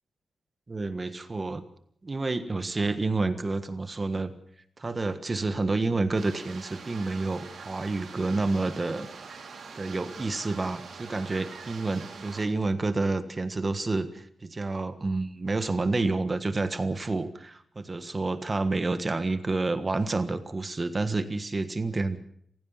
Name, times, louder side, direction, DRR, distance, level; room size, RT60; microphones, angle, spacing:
voice 1, 0.7-1.6 2.0-4.3 4.8-9.1 9.7-22.2, right 3 dB, 25° right, 10 dB, 1.5 m, -29 dB
sound 1, 6.1-12.5, right 5 dB, 65° right, 4.6 m, -44 dB
28.5 x 16.0 x 5.8 m, 0.67 s
wide cardioid pair, 145°, 0 cm